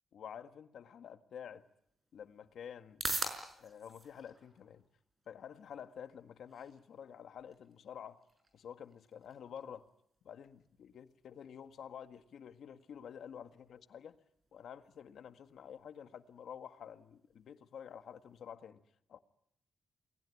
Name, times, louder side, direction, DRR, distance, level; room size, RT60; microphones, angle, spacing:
voice 1, 0.1-1.6 2.1-3.0 3.6-4.8 5.3-8.2 8.5-9.9 10.2-14.2 14.5-18.8 19.1-19.2, left 8 dB, 65° left, 9 dB, 1.7 m, -49 dB
sound 1, 1.5-18.5, right 2 dB, 25° right, 5.6 m, -49 dB
29.0 x 20.0 x 9.8 m, 0.74 s
cardioid pair, 120°, 0 cm